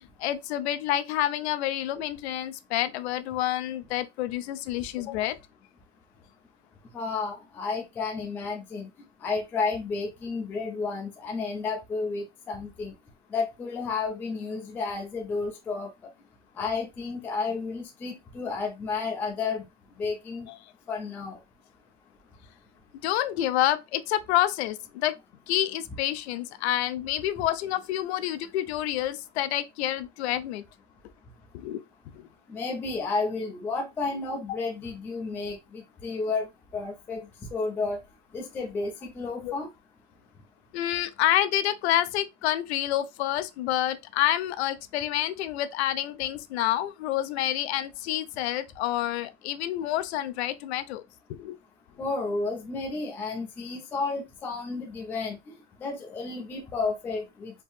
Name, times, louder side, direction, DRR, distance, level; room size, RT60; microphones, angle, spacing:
voice 1, 0.0-5.4 20.5-20.6 23.0-25.1 25.5-30.6 31.5-31.8 32.1-32.3 39.4-39.5 40.7-51.0 51.3-51.6, left 13 dB, 65° left, 0.6 m, -28 dB
voice 2, 6.9-8.9 9.2-12.9 13.3-15.9 16.6-19.6 20.0-20.5 20.9-21.4 32.5-36.5 36.7-37.2 37.5-38.0 38.3-39.7 52.0-55.4 55.8-57.6, left 4 dB, 5° left, 0.4 m, -31 dB
4.4 x 2.9 x 3.3 m
supercardioid pair, 170°, 36 cm